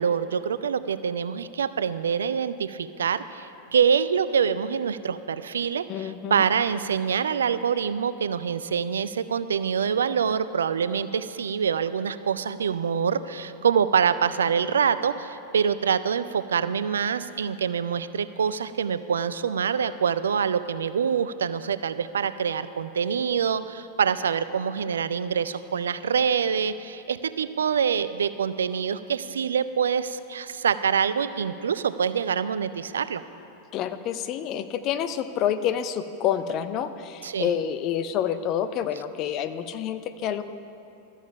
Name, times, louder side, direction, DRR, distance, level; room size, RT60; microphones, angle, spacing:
voice 1, 0.0-33.2 37.2-37.5, right 7 dB, 65° right, 14 dB, 0.3 m, -25 dB
voice 2, 5.9-6.4 33.7-40.4, left 9 dB, 35° left, 11 dB, 0.5 m, -28 dB
12.5 x 7.2 x 5.6 m, 2.8 s
figure-of-eight pair, 90°, 0 cm